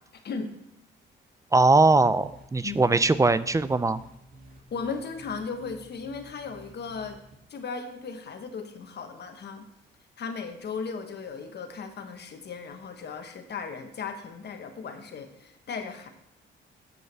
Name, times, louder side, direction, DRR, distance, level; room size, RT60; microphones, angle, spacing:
voice 1, 1.5-4.0, right 3 dB, 15° right, 15 dB, 0.4 m, -21 dB
sound 1, 2.2-7.3, right 1 dB, 45° right, 2.1 m, -51 dB
voice 2, 4.7-7.2 7.5-9.7 10.2-16.1, left 5 dB, 60° left, 6 dB, 1.4 m, -36 dB
8.0 x 6.3 x 6.7 m, 0.80 s
cardioid pair, 85°, 20 cm